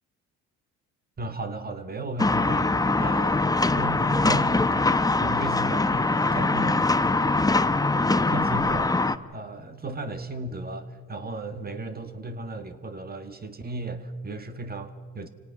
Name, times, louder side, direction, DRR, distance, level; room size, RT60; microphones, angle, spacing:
voice 1, 1.2-3.4 3.7-8.9 9.3-15.3, right 2 dB, 30° right, 7 dB, 1.9 m, -35 dB
sound 1, 2.2-9.2, left 3 dB, 10° left, 0.8 m, -23 dB
27.0 x 18.0 x 6.0 m, 1.5 s
cardioid pair, 90°, 30 cm